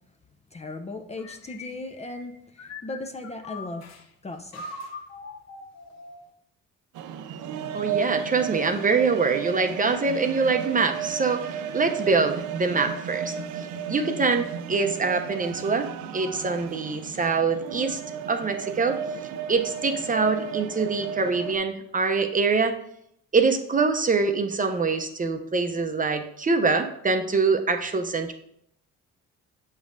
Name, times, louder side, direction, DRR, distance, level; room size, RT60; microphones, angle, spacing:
voice 1, 0.5-3.9 4.2-4.6, left 2 dB, 20° left, 5 dB, 0.5 m, -37 dB
sound 1, 1.2-4.0 4.5-6.3, left 3 dB, 60° left, 0.9 m, -42 dB
sound 2, 6.9-21.6, right 7 dB, 85° right, 0.5 m, -33 dB
voice 2, 7.7-11.5 11.7-18.0 18.3-19.0 19.5-22.7 23.3-28.3, right 4 dB, 25° right, 6 dB, 0.6 m, -24 dB
7.2 x 5.2 x 2.6 m, 0.73 s
cardioid pair, 90°, 30 cm